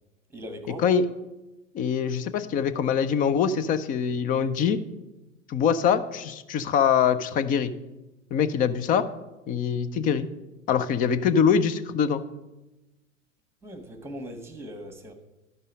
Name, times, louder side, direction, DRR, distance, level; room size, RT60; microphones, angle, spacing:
voice 1, 0.3-0.8 13.6-15.1, equal, 5° right, 7 dB, 1.4 m, -39 dB
voice 2, 1.7-4.8 5.5-7.7 8.3-9.0 9.5-10.3 10.7-12.2, left 7 dB, 20° left, 13 dB, 0.5 m, -23 dB
12.5 x 5.4 x 5.2 m, 1.0 s
hypercardioid pair, 105°, 40 cm